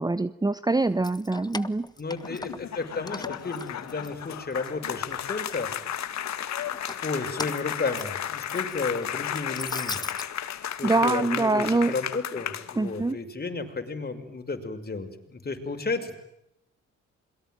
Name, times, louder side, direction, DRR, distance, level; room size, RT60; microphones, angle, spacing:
voice 1, 0.0-1.9 10.8-11.9 12.8-13.2, right 2 dB, 15° right, 14 dB, 1.1 m, -24 dB
Keys jangling, 0.9-2.8 3.1-4.7 5.1-5.8 6.6-10.3, left 2 dB, 15° left, 1.3 m, -40 dB
voice 2, 2.0-6.1 7.0-10.0 10.8-16.1, left 3 dB, 30° left, 7 dB, 6.0 m, -33 dB
clapping and laughter, 2.1-13.1, left 10 dB, 65° left, 2.4 m, -34 dB
28.0 x 22.5 x 9.2 m, 0.80 s
cardioid pair, 90°, 30 cm